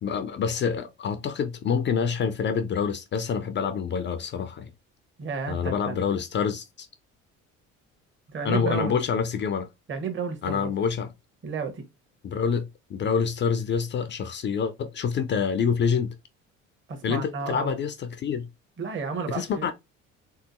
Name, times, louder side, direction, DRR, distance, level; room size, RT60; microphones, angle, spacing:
voice 1, 0.0-4.7 5.5-6.9 8.4-9.7 10.4-11.1 12.2-16.1 17.0-18.5 19.3-19.7, left 6 dB, 30° left, 0.4 m, -27 dB
voice 2, 5.2-6.0 8.3-9.0 9.9-10.7 11.4-11.8 16.9-17.8 18.8-19.7, right 5 dB, 30° right, 0.9 m, -32 dB
3.5 x 2.7 x 2.4 m
figure-of-eight pair, 50°, 40 cm